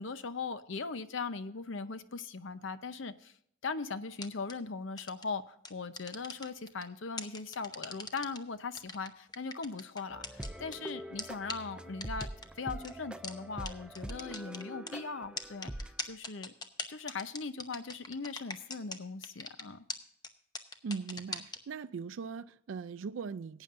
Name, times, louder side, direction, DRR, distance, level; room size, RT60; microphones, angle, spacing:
voice 1, 0.0-3.3 3.6-12.3 12.6-16.5 16.9-19.8, left 4 dB, 70° left, 0.7 m, -39 dB
sound 1, 4.2-4.5 5.0-5.2 5.6-6.8 7.2-8.4 8.8-10.8 11.2-11.3 11.5-11.6 12.0-12.5 12.8-12.9 13.2-13.3 13.7-13.8 14.0-14.9 15.4-19.0 19.2-19.6 19.9-20.0 20.2-20.3 20.6-21.6, left 3 dB, 20° left, 0.8 m, -40 dB
sound 2, 10.1-16.0, right 1 dB, 5° right, 0.4 m, -44 dB
voice 2, 20.8-23.6, right 5 dB, 70° right, 0.4 m, -40 dB
17.5 x 9.1 x 2.5 m
head